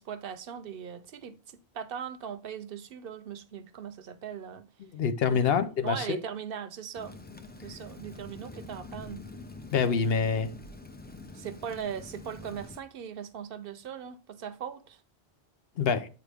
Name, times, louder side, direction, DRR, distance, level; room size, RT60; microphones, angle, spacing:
voice 1, 0.0-4.6 5.3-5.5 5.8-7.1 7.5-9.2 11.3-15.0, right 8 dB, 65° right, 0.8 m, -39 dB
voice 2, 4.9-6.2 9.7-10.5 15.8-16.1, left 6 dB, 70° left, 0.9 m, -26 dB
Rain, 7.0-12.8, left 2 dB, 15° left, 0.4 m, -46 dB
8.6 x 4.6 x 3.4 m
omnidirectional pair, 1.1 m